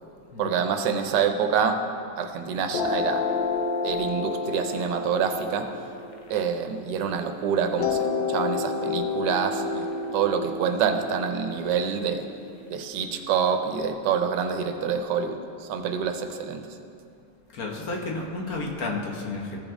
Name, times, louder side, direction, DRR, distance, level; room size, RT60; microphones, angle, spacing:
voice 1, 0.4-1.8 2.2-3.2 3.8-5.6 6.3-9.9 10.1-12.2 12.7-16.6, right 7 dB, 80° right, 6 dB, 1.3 m, -26 dB
sound 1, 2.7-7.1 7.8-12.7, left 4 dB, 85° left, 1.4 m, -30 dB
voice 2, 17.5-19.6, left 3 dB, 60° left, 0 dB, 1.3 m, -31 dB
15.0 x 5.2 x 3.6 m, 2.5 s
omnidirectional pair, 1.9 m